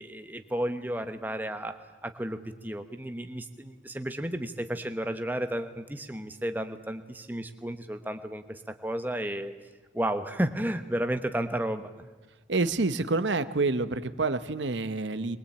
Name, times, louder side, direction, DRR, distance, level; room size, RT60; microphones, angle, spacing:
voice 1, 0.0-1.8 2.0-9.5 9.9-12.1, right 1 dB, 10° right, 7 dB, 1.1 m, -32 dB
voice 2, 12.5-15.4, right 3 dB, 80° right, 11 dB, 1.0 m, -28 dB
22.0 x 22.0 x 8.7 m, 1.2 s
head